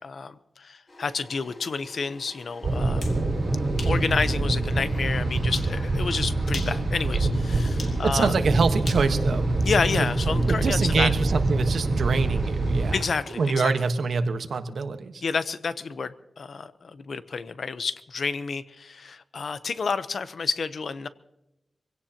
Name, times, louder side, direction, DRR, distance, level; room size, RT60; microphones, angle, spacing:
voice 1, 0.0-3.1 3.8-8.3 9.6-11.1 12.9-13.7 15.2-21.1, left 5 dB, 70° left, 13 dB, 0.8 m, -30 dB
sound 1, 0.9-13.7, left 1 dB, 45° left, 5.1 m, -47 dB
sound 2, 2.6-13.0, right 2 dB, 60° right, 6.5 m, -25 dB
sound 3, 2.8-3.2 3.8-4.0 4.5-4.6 5.5-5.7 6.4-6.8 7.8-8.0 8.9-10.1, left 4 dB, 85° left, 2.6 m, -39 dB
voice 2, 8.0-9.5 10.0-10.1 10.5-12.9 13.4-15.2, right 4 dB, 85° right, 8 dB, 1.3 m, -25 dB
24.0 x 17.0 x 2.9 m, 0.90 s
wide cardioid pair, 105°, 0 cm